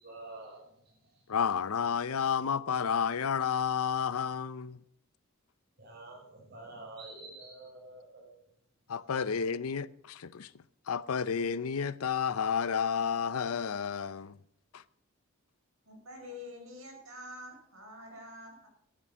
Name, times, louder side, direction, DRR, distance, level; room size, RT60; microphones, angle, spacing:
voice 1, 0.0-1.3 5.8-8.3 9.1-9.2, right 2 dB, 50° right, 7.0 m, -48 dB
voice 2, 1.3-4.8 8.9-14.4 14.7-14.8, left 7 dB, 85° left, 0.6 m, -31 dB
voice 3, 15.9-18.7, left 1 dB, 70° right, 5.3 m, -47 dB
12.5 x 9.3 x 6.2 m
head